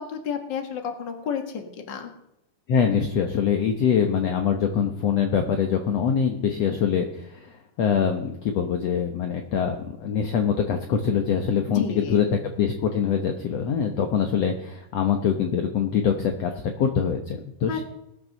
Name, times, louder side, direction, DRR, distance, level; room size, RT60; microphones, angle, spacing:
voice 1, 0.0-2.1 11.7-12.3 17.7-17.8, left 7 dB, 40° left, 5 dB, 1.9 m, -31 dB
voice 2, 2.7-16.5 16.8-17.8, left 7 dB, 60° left, 5 dB, 1.9 m, -24 dB
20.0 x 6.7 x 6.6 m, 0.82 s
omnidirectional pair, 3.8 m